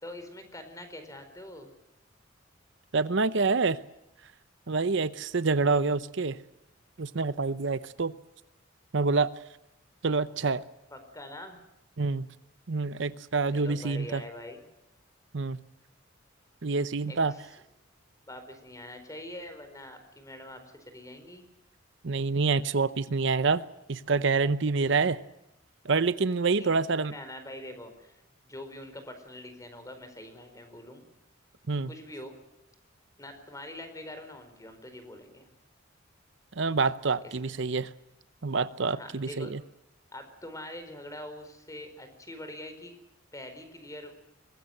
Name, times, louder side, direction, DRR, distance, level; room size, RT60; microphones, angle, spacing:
voice 1, 0.0-1.7 10.9-11.6 13.5-14.6 17.1-17.2 18.3-21.4 26.5-26.7 27.0-31.1 31.9-32.3 33.2-35.5 37.4-37.5 38.9-39.5 40.1-42.9 43.3-44.1, left 1 dB, 15° left, 8 dB, 4.6 m, -44 dB
voice 2, 2.9-3.8 4.7-6.4 7.0-8.1 8.9-9.3 10.0-10.6 12.0-12.3 12.7-14.2 15.3-15.6 16.6-17.4 22.0-23.6 23.9-25.2 25.8-27.1 31.7-31.9 36.6-37.9 38.4-39.6, right 4 dB, 60° right, 14 dB, 0.8 m, -27 dB
23.0 x 20.0 x 7.8 m, 0.87 s
head